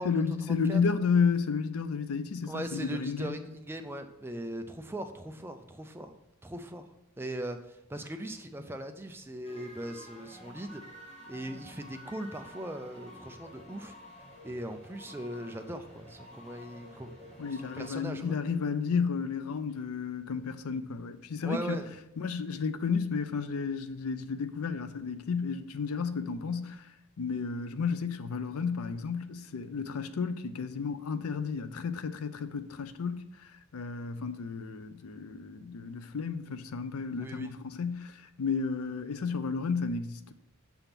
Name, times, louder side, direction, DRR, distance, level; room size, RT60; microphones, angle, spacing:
voice 1, 0.0-3.4 17.4-21.8 22.2-40.3, left 5 dB, 80° left, 0.5 m, -32 dB
voice 2, 2.4-6.1 6.4-6.9 7.2-10.8 11.3-13.9 14.4-18.2 21.4-21.8 37.2-37.5, right 1 dB, 10° right, 0.4 m, -39 dB
sound 1, 9.4-18.0, equal, 30° left, 1.7 m, -50 dB
7.0 x 3.5 x 5.7 m
head